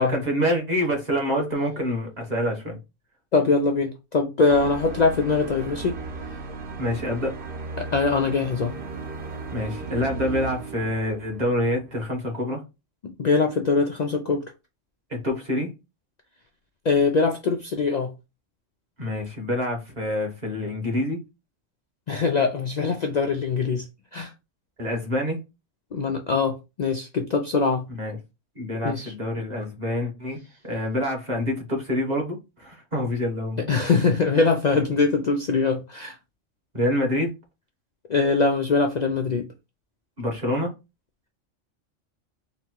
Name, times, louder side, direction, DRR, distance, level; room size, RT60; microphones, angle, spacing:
voice 1, 0.0-2.8 6.8-7.3 9.5-12.6 15.1-15.7 19.0-21.2 24.8-25.4 27.9-28.2 28.5-30.4 30.6-33.7 36.7-37.3 40.2-40.7, left 1 dB, 35° right, 1.3 m, -26 dB
voice 2, 3.3-6.0 7.8-8.7 13.0-14.4 16.9-18.1 22.1-23.9 24.1-24.3 25.9-27.8 28.8-29.1 33.7-36.1 38.1-39.4, left 4 dB, 70° left, 0.4 m, -22 dB
sound 1, 4.5-12.1, right 4 dB, 50° right, 0.9 m, -36 dB
4.0 x 2.2 x 4.5 m
omnidirectional pair, 1.3 m